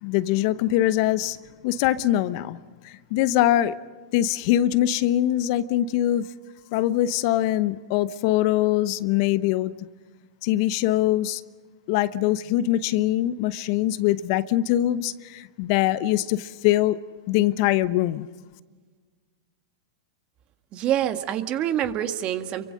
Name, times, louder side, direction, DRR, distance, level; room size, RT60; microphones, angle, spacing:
voice 1, 0.0-1.4 1.6-2.6 2.8-3.7 4.1-6.3 6.7-9.7 10.4-11.4 11.9-17.0 17.3-18.3, left 13 dB, 55° left, 0.9 m, -23 dB
voice 2, 20.7-22.7, right 11 dB, 40° right, 1.8 m, -26 dB
29.0 x 24.0 x 6.5 m
hypercardioid pair, 110°, 3 cm